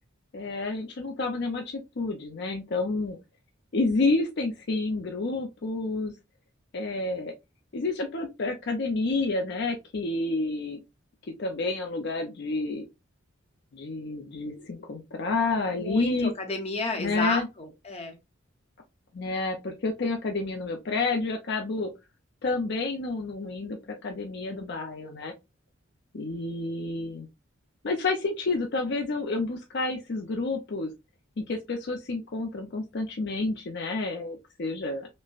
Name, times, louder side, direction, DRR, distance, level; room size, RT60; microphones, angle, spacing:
voice 1, 0.3-3.2 3.7-6.1 6.7-7.3 7.7-10.8 11.4-12.9 13.7-16.3 17.0-17.5 19.1-21.9 22.4-25.3 26.1-27.3 27.8-30.9 31.4-35.1, left 3 dB, 55° left, 0.5 m, -29 dB
voice 2, 15.8-18.2, left 3 dB, 30° left, 0.8 m, -31 dB
5.3 x 2.1 x 2.4 m
head